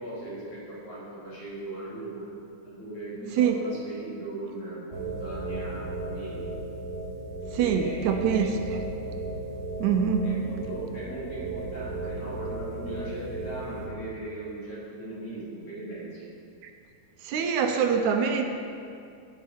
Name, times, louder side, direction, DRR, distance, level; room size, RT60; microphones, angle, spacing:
voice 1, 0.0-2.2 2.6-6.5 7.5-8.6 10.2-16.2, right 2 dB, 50° left, -9 dB, 4.2 m, -39 dB
sound 1, 4.9-13.9, right 2 dB, 20° right, 2.6 m, -35 dB
voice 2, 7.5-8.8 9.8-10.3 17.2-18.4, right 7 dB, 80° right, 5 dB, 2.1 m, -24 dB
17.5 x 6.1 x 4.5 m, 2.4 s
omnidirectional pair, 3.4 m